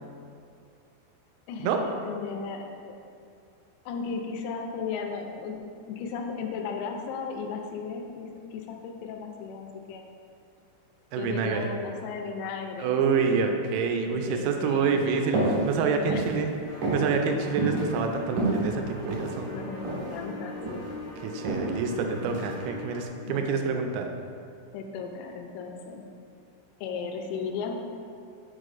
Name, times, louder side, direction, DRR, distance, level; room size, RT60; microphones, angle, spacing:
voice 1, 1.5-3.0 3.9-10.0 11.2-13.5 14.0-15.3 16.0-16.2 19.5-20.9 23.2-23.7 24.7-26.1 26.8-27.7, left 5 dB, 90° left, 3 dB, 3.4 m, -36 dB
voice 2, 11.1-11.7 12.8-16.5 16.9-19.5 21.2-24.1, right 5 dB, 85° right, 4 dB, 3.2 m, -27 dB
sound 1, 15.3-15.6 16.0-16.3 16.8-17.1 17.6-17.8 18.3-19.3 19.8-20.1 20.4-20.9 21.4-21.6 22.3-22.5, right 2 dB, 65° right, 2.0 m, -28 dB
sound 2, 16.6-23.1, left 1 dB, 75° left, 2.7 m, -41 dB
6.6 x 6.2 x 2.5 m, 2.4 s
omnidirectional pair, 6.0 m